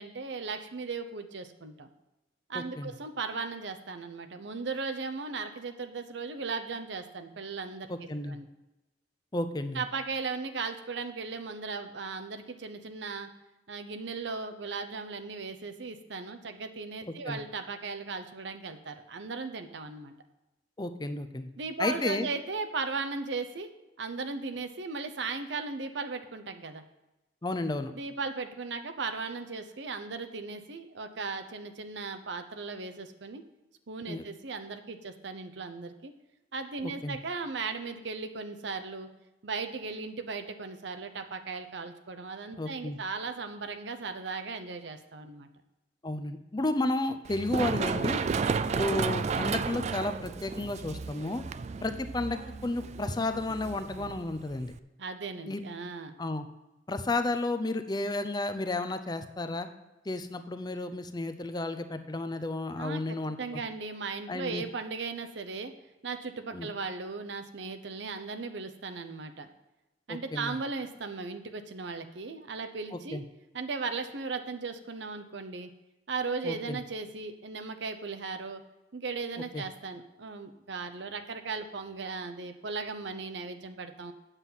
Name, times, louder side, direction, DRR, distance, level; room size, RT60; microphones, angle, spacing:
voice 1, 0.0-1.9 2.5-7.9 8.3-8.5 9.7-13.3 13.7-20.1 21.6-23.7 24.0-26.8 27.9-33.4 33.9-36.1 36.5-39.1 39.4-45.5 55.0-56.1 62.8-65.7 66.0-69.5 70.1-73.2 73.5-75.7 76.1-78.6 78.9-84.1, right 4 dB, 70° right, 7 dB, 0.8 m, -37 dB
voice 2, 2.5-2.9 7.9-8.4 9.3-9.8 17.3-17.4 20.8-21.5 21.8-22.3 27.4-27.9 34.1-34.2 36.8-37.2 42.6-43.0 46.0-48.3 48.7-51.4 51.8-54.7 55.5-55.6 56.2-56.5 56.9-59.7 60.1-63.6 64.3-64.6 66.5-66.7 70.1-70.6 72.9-73.2 76.4-76.8 79.5-79.6, left 2 dB, 20° left, 9 dB, 0.5 m, -32 dB
Run, 47.2-54.8, right 5 dB, 35° right, 0.3 m, -33 dB
8.2 x 7.4 x 5.6 m, 1.0 s
head